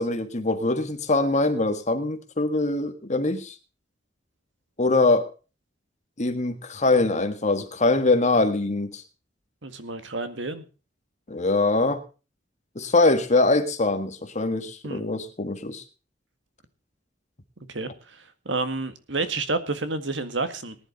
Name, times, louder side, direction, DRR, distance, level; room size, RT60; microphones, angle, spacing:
voice 1, 0.0-3.5 4.8-5.3 6.2-9.0 11.3-12.0 12.7-15.8, left 2 dB, 40° left, 8 dB, 1.6 m, -23 dB
voice 2, 9.6-10.7 14.8-15.0 17.7-20.8, right 3 dB, 80° right, 10 dB, 1.9 m, -30 dB
19.5 x 10.5 x 4.0 m, 0.34 s
head